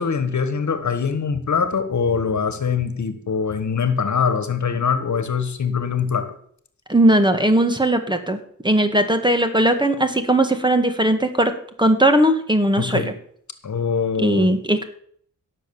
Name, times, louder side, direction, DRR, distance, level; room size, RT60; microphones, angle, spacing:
voice 1, 0.0-6.3 12.8-13.1 13.6-14.5, left 6 dB, 65° left, 11 dB, 1.5 m, -23 dB
voice 2, 6.9-8.4 8.6-11.5 11.8-13.1 14.2-14.8, right 1 dB, 15° right, 7 dB, 1.8 m, -18 dB
17.5 x 6.7 x 7.1 m, 0.62 s
wide cardioid pair, 100°, 31 cm